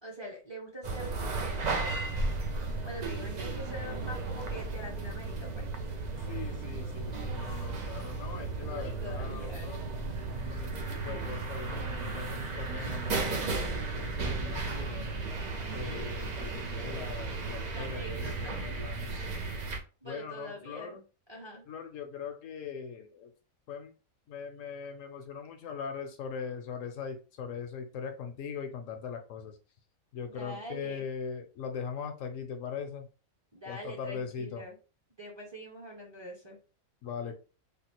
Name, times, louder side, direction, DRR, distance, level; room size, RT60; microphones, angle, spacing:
voice 1, 0.0-1.9 2.8-5.7 8.7-9.7 15.8-16.3 17.7-18.6 20.0-21.0 21.3-21.7 30.2-31.0 33.5-34.8 35.2-36.6, equal, 25° right, -1 dB, 0.7 m, -44 dB
sound 1, 0.8-19.8, right 3 dB, 85° right, 0.3 m, -35 dB
voice 2, 6.3-9.8 10.5-15.2 15.7-19.6 20.0-21.0 21.7-23.3 23.7-23.9 24.3-29.6 30.1-33.1 33.7-34.7 37.0-37.3, left 6 dB, 70° left, 6 dB, 0.9 m, -40 dB
3.4 x 2.4 x 2.9 m, 0.34 s
omnidirectional pair, 1.5 m